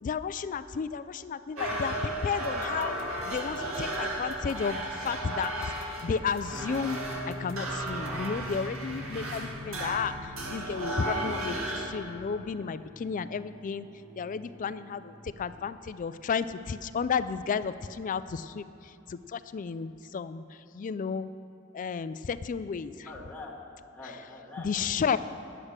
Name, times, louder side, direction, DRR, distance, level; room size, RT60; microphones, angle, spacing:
voice 1, 0.0-3.0 3.3-13.9 14.2-21.3 21.7-23.1 24.0-24.2 24.6-25.2, left 6 dB, 40° left, 14 dB, 0.3 m, -33 dB
sound 1, 1.6-11.9, right 1 dB, 80° right, 2.0 m, -34 dB
sound 2, 2.4-8.4, left 2 dB, 90° left, 1.0 m, -52 dB
sound 3, 6.4-15.6, equal, 45° right, 1.9 m, -45 dB
voice 2, 23.0-25.2, left 2 dB, 5° left, -7 dB, 1.3 m, -44 dB
9.9 x 8.7 x 6.5 m, 2.9 s
head